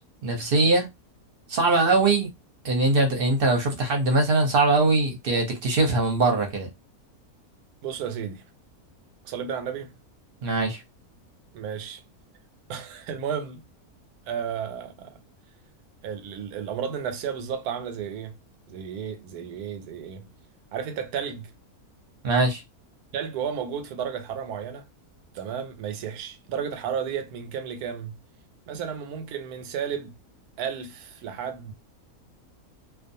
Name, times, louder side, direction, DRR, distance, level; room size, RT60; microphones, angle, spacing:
voice 1, 0.2-0.9 1.5-2.3 2.6-6.7 10.4-10.8 22.2-22.6, right 2 dB, 50° right, 0.7 m, -22 dB
voice 2, 7.8-8.4 9.2-9.9 11.5-12.0 12.7-13.6 14.3-15.2 16.0-18.4 18.7-20.3 20.7-21.5 23.1-24.9 25.3-28.2 28.7-30.2 30.6-31.7, right 7 dB, 90° right, 1.1 m, -33 dB
2.4 x 2.3 x 2.6 m
omnidirectional pair, 1.6 m